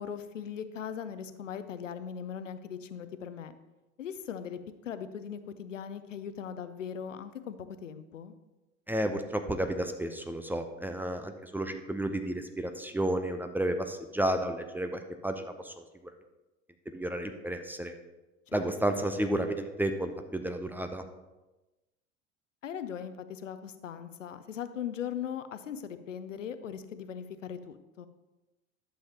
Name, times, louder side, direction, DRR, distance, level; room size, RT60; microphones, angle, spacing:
voice 1, 0.0-3.6 4.0-8.3 18.5-18.9 22.6-28.1, left 8 dB, 80° left, 11 dB, 0.7 m, -39 dB
voice 2, 8.9-15.8 16.9-17.9 18.5-21.0, right 1 dB, 5° right, 7 dB, 0.6 m, -32 dB
11.0 x 7.2 x 2.8 m, 1.1 s
figure-of-eight pair, 70°, 37 cm